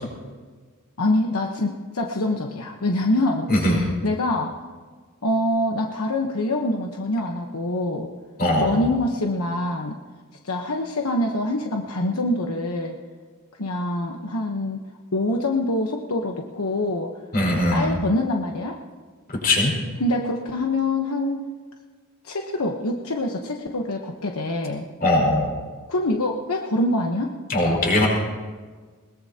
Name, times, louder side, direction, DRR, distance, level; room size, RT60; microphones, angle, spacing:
voice 1, 1.0-4.6 5.2-8.1 8.6-10.0 10.4-13.0 13.6-14.8 15.1-17.1 17.7-18.8 20.0-21.4 22.2-24.9 25.9-27.3, left 1 dB, 80° left, 2 dB, 1.1 m, -25 dB
voice 2, 3.5-3.8 8.4-8.9 17.3-17.9 19.4-19.7 25.0-25.5 27.5-28.1, left 1 dB, 45° left, -3 dB, 5.4 m, -20 dB
21.0 x 20.5 x 2.9 m, 1.5 s
head